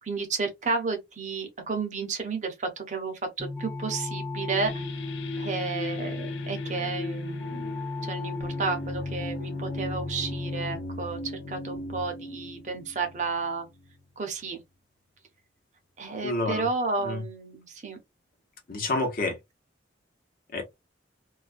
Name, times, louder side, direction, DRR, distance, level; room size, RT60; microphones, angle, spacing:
voice 1, 0.0-4.8 5.4-7.7 8.0-11.2 11.5-13.7 14.2-14.6 16.0-18.0, right 4 dB, 40° right, 0.6 m, -32 dB
sound 1, 3.4-10.8, left 2 dB, 5° left, 0.3 m, -35 dB
sound 2, 4.6-14.0, left 2 dB, 75° left, 0.4 m, -39 dB
voice 2, 16.2-16.7 17.0-17.2 18.7-19.4 20.5-20.6, left 2 dB, 50° left, 0.8 m, -28 dB
2.4 x 2.1 x 2.4 m
head